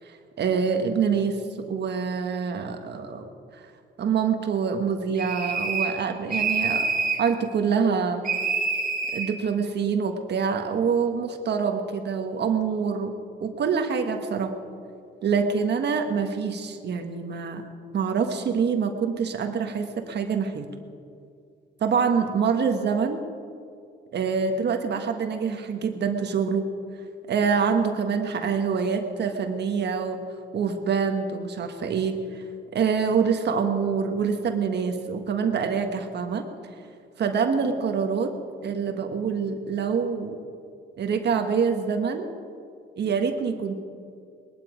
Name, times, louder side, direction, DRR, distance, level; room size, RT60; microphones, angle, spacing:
voice 1, 0.1-3.6 4.0-6.9 7.2-8.2 9.1-13.1 13.4-14.5 15.2-17.6 17.9-20.6 21.8-23.2 24.1-26.6 27.3-30.2 30.5-32.4 32.7-36.5 37.2-38.3 38.6-40.4 41.0-42.3 43.0-43.8, right 6 dB, 60° right, 5 dB, 1.4 m, -25 dB
sound 1, 5.2-6.0 6.3-7.3 8.2-9.3, right 4 dB, 40° right, 2.1 m, -26 dB
20.5 x 12.0 x 5.1 m, 2.4 s
cardioid pair, 90°, 20 cm